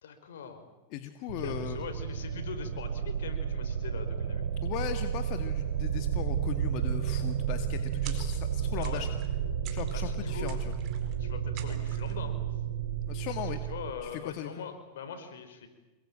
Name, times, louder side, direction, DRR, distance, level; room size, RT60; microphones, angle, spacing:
voice 1, 0.0-0.6 1.3-4.4 8.8-9.0 9.9-10.5 11.2-12.4 13.4-15.7, left 6 dB, 80° left, 8 dB, 5.2 m, -42 dB
voice 2, 0.9-1.8 4.6-9.1 9.7-10.7 13.1-13.6 14.0-14.6, left 11 dB, 50° left, 7 dB, 2.0 m, -38 dB
sound 1, 1.3-13.9, right 8 dB, 85° right, 6.0 m, -32 dB
sound 2, 8.0-8.5 8.8-9.3 9.6-10.1 10.5-11.1 11.6-12.2, right 10 dB, 45° right, 4.5 m, -48 dB
27.5 x 22.0 x 8.9 m, 1.1 s
hypercardioid pair, 120°, 0 cm